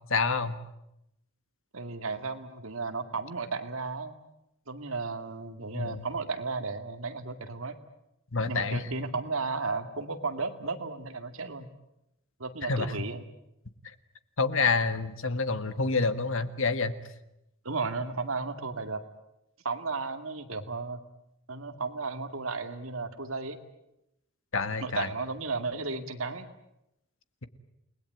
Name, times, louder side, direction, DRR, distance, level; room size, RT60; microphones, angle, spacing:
voice 1, 0.1-0.5 5.7-6.0 8.3-8.8 12.6-12.9 14.4-16.9 24.5-25.1, left 4 dB, 65° left, 12 dB, 1.7 m, -28 dB
voice 2, 1.7-4.2 4.7-7.8 8.5-11.7 12.4-13.3 17.6-19.0 19.6-21.0 21.5-23.6 24.8-26.5, right 3 dB, 65° right, 8 dB, 2.3 m, -34 dB
29.5 x 20.5 x 9.3 m, 0.84 s
head